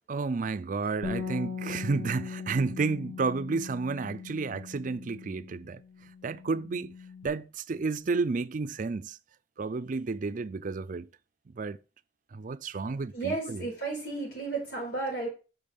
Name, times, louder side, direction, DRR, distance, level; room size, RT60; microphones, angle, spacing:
voice 1, 0.1-5.8 6.2-7.0 7.2-9.2 9.6-11.1 11.5-11.8 12.3-13.7, right 4 dB, 45° right, 0.4 m, -31 dB
Bass guitar, 1.0-7.3, left 5 dB, 60° left, 2.3 m, -40 dB
voice 2, 13.1-15.3, right 3 dB, 85° left, 5.2 m, -33 dB
6.3 x 5.3 x 6.6 m
head